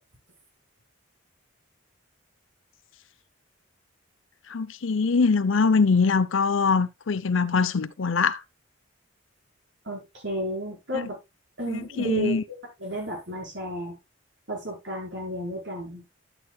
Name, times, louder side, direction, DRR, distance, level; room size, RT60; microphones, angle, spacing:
voice 1, 4.5-8.4 10.9-11.0 11.7-12.4, left 4 dB, 75° left, 0.6 m, -23 dB
voice 2, 9.8-11.2 11.6-14.0 14.5-16.0, equal, 60° right, 4.6 m, -32 dB
11.5 x 8.4 x 2.3 m
head